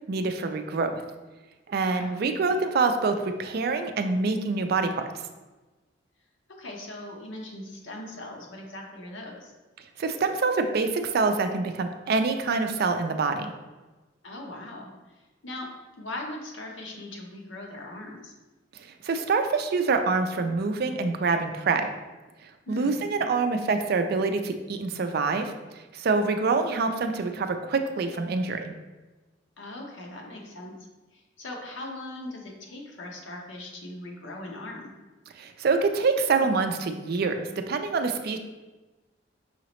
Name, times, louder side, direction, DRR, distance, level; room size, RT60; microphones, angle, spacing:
voice 1, 0.1-1.0 1.7-5.1 10.0-13.5 19.0-21.9 22.7-25.5 25.9-28.7 35.4-38.4, right 4 dB, 55° right, 7 dB, 0.4 m, -26 dB
voice 2, 1.8-2.2 6.6-9.5 14.2-15.7 16.0-18.3 22.7-23.0 26.4-26.7 29.6-30.7 31.1-34.9, left 1 dB, 85° left, 0 dB, 0.9 m, -40 dB
5.6 x 2.9 x 3.0 m, 1.2 s
head